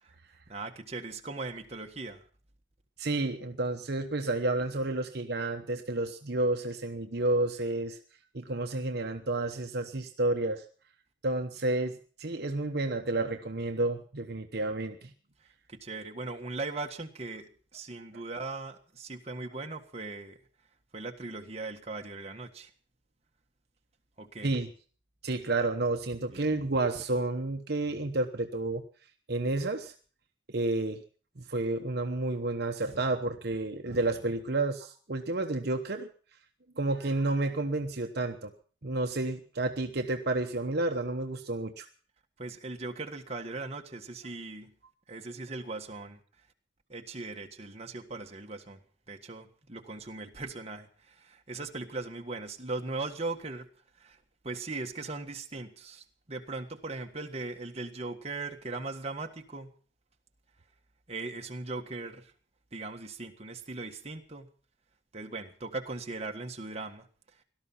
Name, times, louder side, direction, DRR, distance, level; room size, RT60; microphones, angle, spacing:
voice 1, 0.5-2.2 15.4-20.4 20.9-22.7 24.2-24.5 26.3-26.6 42.4-44.7 45.1-46.2 46.9-48.8 49.1-53.7 54.0-54.2 54.4-59.7 61.1-62.3 62.7-64.5 65.1-67.1, right 3 dB, 35° right, 3 dB, 1.6 m, -39 dB
voice 2, 3.0-8.0 8.3-10.6 11.2-15.1 24.4-24.7 25.2-28.8 29.3-29.9 30.5-31.0 31.4-36.1 36.8-38.5 38.8-41.9, right 2 dB, 60° right, 5 dB, 1.1 m, -30 dB
17.5 x 12.5 x 5.7 m, 0.42 s
head